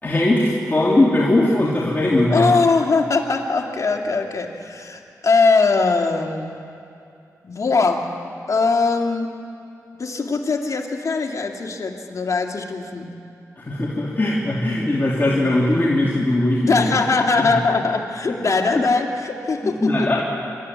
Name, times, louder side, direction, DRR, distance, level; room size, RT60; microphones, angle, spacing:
voice 1, 0.0-2.5 13.6-16.9 17.4-17.5 18.7-18.8 19.6-20.2, left 1 dB, 30° left, -5 dB, 3.2 m, -19 dB
voice 2, 2.3-6.6 7.4-8.0 8.5-9.3 10.0-13.1 16.6-20.1, left 4 dB, 55° left, 2 dB, 2.4 m, -21 dB
27.0 x 13.0 x 9.7 m, 2.6 s
cardioid pair, 65°, 6 cm